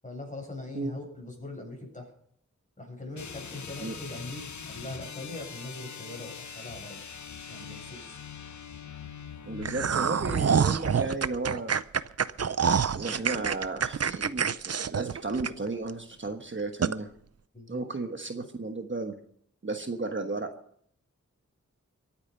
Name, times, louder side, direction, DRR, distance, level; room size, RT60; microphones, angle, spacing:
voice 1, 0.0-2.1 2.8-7.0 7.5-8.2 17.5-17.8, left 2 dB, 25° left, 0 dB, 7.9 m, -41 dB
sound 1, 3.1-10.7, left 6 dB, 80° left, 1.0 m, -42 dB
voice 2, 9.4-11.8 12.9-17.1 17.7-19.2 19.6-20.5, right 3 dB, 40° right, 5 dB, 1.3 m, -34 dB
sound 2, 9.6-15.9 16.3-16.4 16.8-17.0, right 7 dB, 60° right, 0.6 m, -27 dB
23.0 x 8.8 x 5.6 m, 0.64 s
wide cardioid pair, 80°, 29 cm